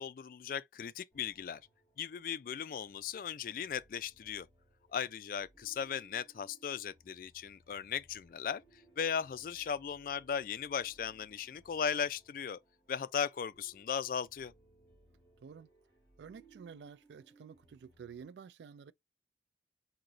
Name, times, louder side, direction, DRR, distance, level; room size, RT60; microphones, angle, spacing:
voice 1, 0.0-1.6 2.0-4.5 4.9-8.6 9.0-12.6 12.9-14.5, left 7 dB, 50° left, 0.3 m, -37 dB
sound 1, 1.1-18.2, right 2 dB, 10° left, 2.2 m, -66 dB
voice 2, 16.2-18.9, right 6 dB, 80° right, 0.3 m, -51 dB
3.9 x 2.8 x 3.0 m
head